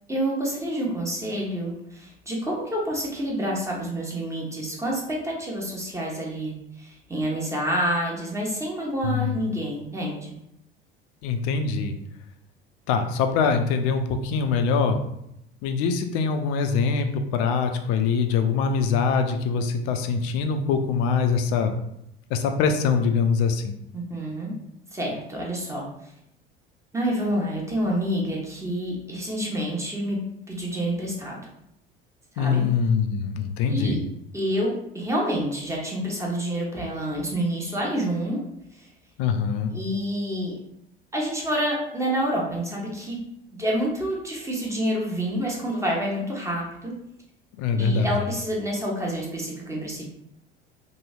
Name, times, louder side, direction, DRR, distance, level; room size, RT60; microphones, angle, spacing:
voice 1, 0.1-10.3 23.9-24.5 24.9-25.9 26.9-30.2 30.5-31.4 32.3-32.7 33.7-34.0 34.3-38.4 38.8-38.9 39.7-40.6 41.1-43.2 43.5-46.9 47.7-50.0, equal, 10° right, -3 dB, 0.9 m, -28 dB
voice 2, 9.0-9.4 11.2-11.9 12.9-15.0 15.6-21.7 22.3-23.7 32.4-34.0 39.2-39.7 47.6-48.1, left 5 dB, 50° left, 6 dB, 0.4 m, -23 dB
2.9 x 2.6 x 2.3 m, 0.79 s
figure-of-eight pair, 65°, 29 cm